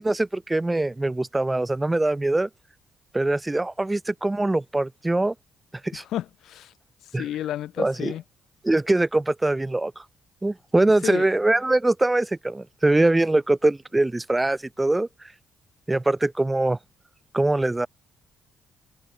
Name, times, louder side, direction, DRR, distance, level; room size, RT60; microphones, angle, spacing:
voice 1, 0.0-2.5 3.1-5.3 5.8-6.0 7.1-7.2 7.8-8.1 8.6-10.0 10.4-15.1 15.9-16.8 17.3-17.9, right 2 dB, 15° right, 0.5 m, -23 dB
voice 2, 5.9-6.7 7.1-8.2 11.0-11.3, left 12 dB, 80° left, 0.7 m, -31 dB
cardioid pair, 90°, 0 cm